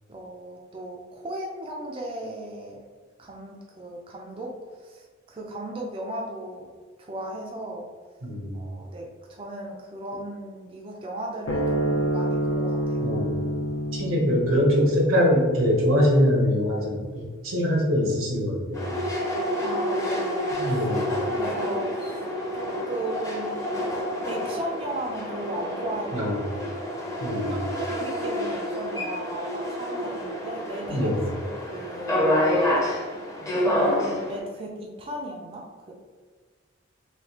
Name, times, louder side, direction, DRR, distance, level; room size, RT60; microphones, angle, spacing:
voice 1, 0.1-2.9 3.2-4.5 4.8-6.7 7.0-7.9 8.5-13.1 19.6-20.6 21.4-22.2 22.5-23.6 24.2-26.6 27.5-31.1 31.4-32.4 33.6-35.9, right 1 dB, 25° right, -2 dB, 0.4 m, -36 dB
voice 2, 8.2-8.6 13.0-13.4 13.9-18.9 20.6-21.2 26.1-26.5 27.2-27.6 30.9-31.2, equal, 85° right, -1 dB, 0.9 m, -23 dB
sound 1, 11.5-18.1, right 1 dB, 80° left, 0.5 m, -29 dB
sound 2, 18.7-34.4, left 1 dB, 15° left, 0.6 m, -28 dB
3.3 x 2.7 x 2.8 m, 1.5 s
head